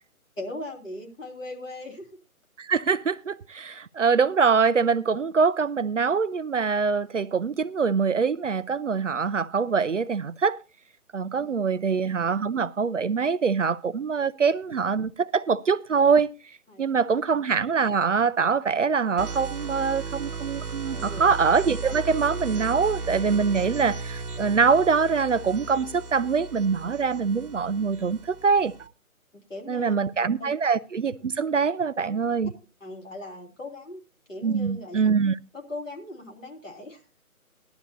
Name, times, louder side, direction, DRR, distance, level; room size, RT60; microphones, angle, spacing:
voice 1, 0.4-2.1 8.9-9.0 11.3-11.6 16.7-17.2 20.9-21.3 29.3-29.9 30.4-30.5 32.8-34.0 34.3-35.2 35.5-37.0, left 1 dB, 60° left, 3.3 m, -39 dB
voice 2, 2.6-10.6 11.1-16.3 16.8-28.9 29.7-32.5 34.4-35.4, right 5 dB, 55° right, 0.5 m, -24 dB
sound 1, 19.2-28.9, right 4 dB, 85° right, 1.1 m, -35 dB
15.5 x 11.5 x 2.7 m
figure-of-eight pair, 150°, 44 cm